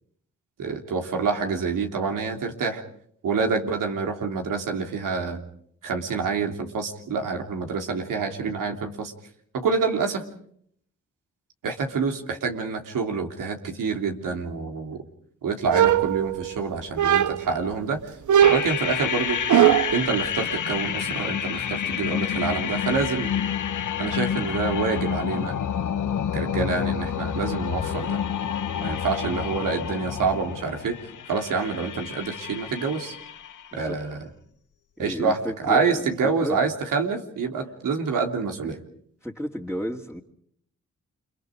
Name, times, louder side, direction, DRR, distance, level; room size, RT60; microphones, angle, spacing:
voice 1, 0.6-2.8 3.2-5.4 5.8-9.1 9.5-10.2 11.6-15.0 15.4-18.0 18.5-19.4 19.9-23.3 24.0-25.5 26.3-28.2 28.8-31.0 31.3-33.2 33.7-34.3 35.0-38.8, right 5 dB, 85° right, 3 dB, 3.3 m, -27 dB
sound 1, 15.7-16.6 17.0-17.6 18.3-20.0, right 10 dB, 70° right, 0.9 m, -19 dB
sound 2, 18.4-33.7, left 8 dB, 70° left, 1.4 m, -29 dB
voice 2, 35.0-36.1 36.4-36.6 39.2-40.2, equal, 5° right, -3 dB, 2.9 m, -32 dB
30.0 x 25.0 x 4.9 m, 0.67 s
supercardioid pair, 50°, 32 cm